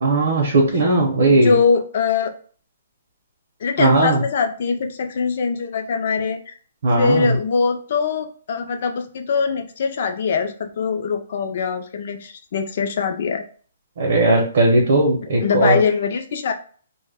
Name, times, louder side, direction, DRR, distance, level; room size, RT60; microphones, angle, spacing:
voice 1, 0.0-1.6 3.8-4.2 6.8-7.4 14.0-15.8, right 2 dB, 55° right, -1 dB, 0.6 m, -17 dB
voice 2, 1.2-2.3 3.6-6.5 7.0-13.4 15.4-16.5, left 5 dB, 40° left, 6 dB, 0.3 m, -22 dB
2.1 x 2.1 x 3.3 m, 0.44 s
hypercardioid pair, 175°, 0 cm